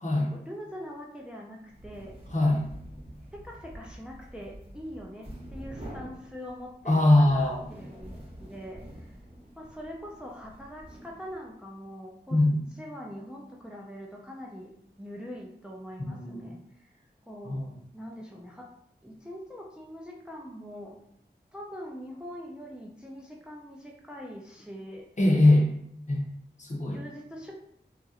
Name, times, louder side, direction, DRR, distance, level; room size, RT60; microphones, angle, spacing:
voice 1, 0.3-2.2 3.3-9.2 9.6-12.4 12.8-16.9 17.3-17.7 17.9-18.7 19.0-21.0 21.5-25.1 26.9-27.7, equal, 5° right, -1 dB, 0.4 m, -43 dB
sound 1, 1.6-11.6, equal, 30° right, 0.9 m, -46 dB
voice 2, 6.9-7.6 12.3-12.6 16.0-16.5 17.4-17.7 25.2-25.7 26.1-26.2 26.6-27.0, left 1 dB, 45° left, -2 dB, 0.7 m, -22 dB
2.9 x 2.4 x 2.8 m, 0.71 s
wide cardioid pair, 50°, 18 cm